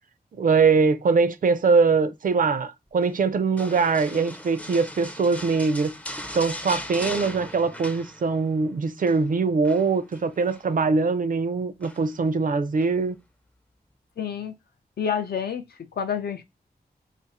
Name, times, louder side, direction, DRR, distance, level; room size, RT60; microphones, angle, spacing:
voice 1, 0.4-5.9 6.3-13.1, right 4 dB, 55° right, 0.4 m, -22 dB
sound 1, 3.6-8.6 8.8-9.2 9.6-10.7 11.8-12.3 12.8-12.9, left 1 dB, 10° left, 0.4 m, -38 dB
voice 2, 14.2-14.5 15.0-16.4, left 7 dB, 80° left, 0.5 m, -29 dB
2.5 x 2.4 x 4.0 m
wide cardioid pair, 105°, 16 cm